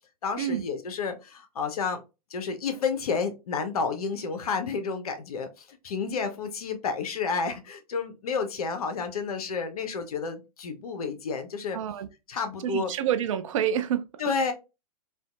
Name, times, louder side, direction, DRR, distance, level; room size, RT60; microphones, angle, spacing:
voice 1, 0.2-2.0 2.3-11.8 12.3-12.9 14.2-14.5, left 5 dB, 65° left, 0.5 m, -30 dB
voice 2, 11.7-12.1 12.6-14.3, right 9 dB, 50° right, 0.4 m, -28 dB
2.6 x 2.1 x 2.3 m
figure-of-eight pair, 115°, 21 cm